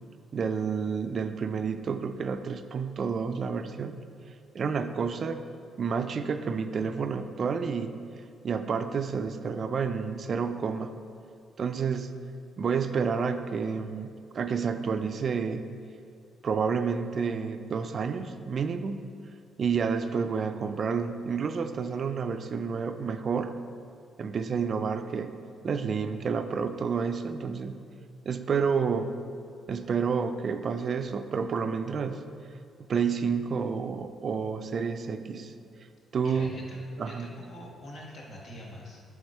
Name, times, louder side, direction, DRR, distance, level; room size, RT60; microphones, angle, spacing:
voice 1, 0.3-3.9 4.5-5.4 5.8-7.9 8.4-10.9 11.6-12.1 12.6-15.7 16.4-19.1 19.6-23.5 24.2-27.8 28.3-29.2 29.7-32.2 32.9-35.5 36.1-36.5 37.0-37.3, right 6 dB, 50° right, 9 dB, 0.3 m, -30 dB
voice 2, 36.2-39.0, equal, 60° left, -2 dB, 1.4 m, -44 dB
8.4 x 3.6 x 4.3 m, 2.3 s
cardioid pair, 90°, 0 cm